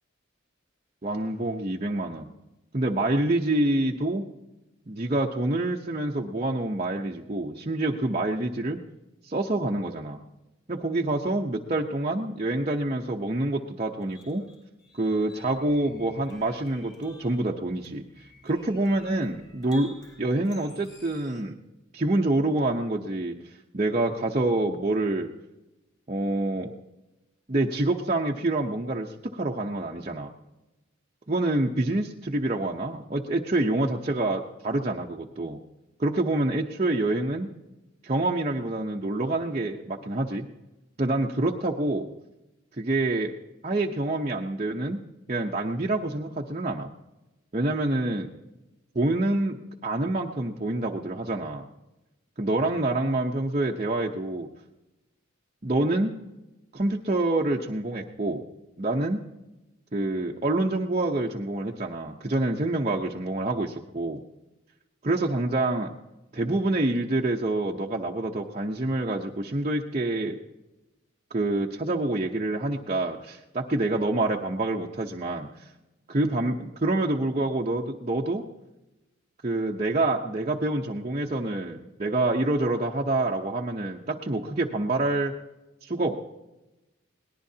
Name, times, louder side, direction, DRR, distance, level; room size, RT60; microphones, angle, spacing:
voice 1, 1.0-2.3 2.7-4.2 4.9-8.8 9.2-10.2 10.7-14.4 15.0-18.0 18.4-21.6 21.9-25.3 26.1-26.7 27.5-30.3 31.3-35.6 36.0-37.5 38.0-40.5 41.0-42.1 42.8-43.3 43.6-45.0 45.3-46.9 47.5-48.3 48.9-51.6 52.4-54.5 55.6-56.1 56.7-58.4 58.8-59.2 59.9-64.2 65.0-66.0 66.3-70.4 71.3-75.7 76.1-78.4 79.4-85.3 85.8-86.2, right 2 dB, 35° right, -1 dB, 0.8 m, -27 dB
sound 1, 14.0-21.4, left 2 dB, 20° left, 3.3 m, -53 dB
22.0 x 18.5 x 2.8 m, 1.0 s
head